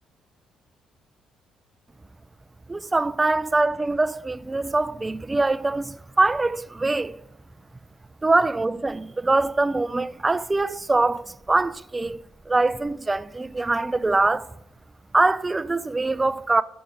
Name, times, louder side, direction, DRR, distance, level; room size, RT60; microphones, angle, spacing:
voice 1, 2.7-7.2 8.2-14.5 15.1-16.6, right 2 dB, 20° right, 0.3 m, -23 dB
6.1 x 6.0 x 5.1 m
hypercardioid pair, 45°, 0 cm